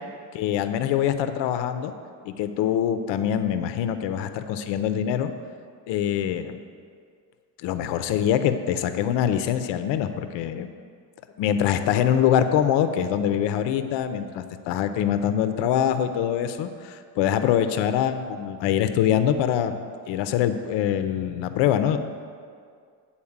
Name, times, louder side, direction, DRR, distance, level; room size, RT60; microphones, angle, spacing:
voice 1, 0.3-1.9 2.3-5.3 5.9-6.6 7.6-10.7 11.4-19.8 20.1-22.0, left 9 dB, 85° left, 10 dB, 0.6 m, -24 dB
8.7 x 4.3 x 7.2 m, 2.2 s
cardioid pair, 145°, 42 cm